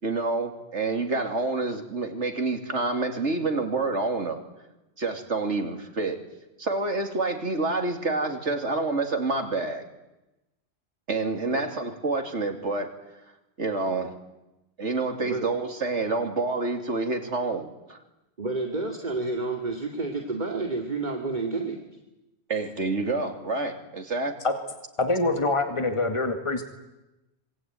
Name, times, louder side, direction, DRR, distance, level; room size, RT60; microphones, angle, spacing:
voice 1, 0.0-4.4 5.0-6.2 6.6-9.8 11.1-12.9 13.6-14.1 14.8-18.0 22.5-24.3, right 3 dB, 85° right, 5 dB, 3.2 m, -28 dB
voice 2, 18.4-21.8, right 3 dB, 40° right, 2 dB, 2.5 m, -30 dB
voice 3, 25.0-26.6, left 2 dB, 25° left, 6 dB, 2.2 m, -25 dB
26.0 x 22.0 x 9.4 m, 1.0 s
omnidirectional pair, 1.2 m